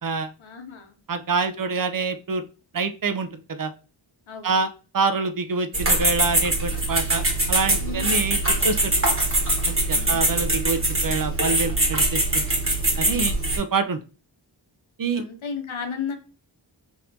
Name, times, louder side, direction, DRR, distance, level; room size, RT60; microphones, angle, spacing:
voice 1, 0.4-1.0 1.5-1.6 4.3-4.6 7.8-8.2 9.9-10.4 15.1-16.2, left 6 dB, 85° left, 5 dB, 0.9 m, -34 dB
voice 2, 1.1-2.4 2.7-3.7 4.4-7.2 7.5-8.4 8.6-8.9 9.7-12.5 13.0-14.0 15.0-15.2, right 4 dB, 45° right, 9 dB, 0.6 m, -26 dB
sound 1, 5.7-13.6, right 1 dB, 25° right, 1.4 m, -23 dB
4.2 x 2.9 x 2.6 m, 0.35 s
wide cardioid pair, 65°, 46 cm